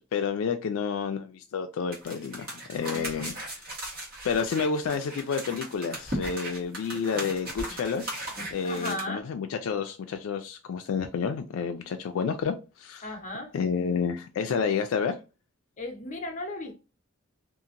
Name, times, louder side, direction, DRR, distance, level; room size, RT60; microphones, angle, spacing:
voice 1, 0.1-3.6 4.2-13.1 13.5-15.2, left 6 dB, 75° left, 0.3 m, -30 dB
sound 1, 1.9-9.0, right 1 dB, 45° right, 1.2 m, -37 dB
voice 2, 8.6-9.3 13.0-13.5 15.8-16.8, left 1 dB, 35° left, 0.7 m, -35 dB
2.8 x 2.5 x 2.5 m
head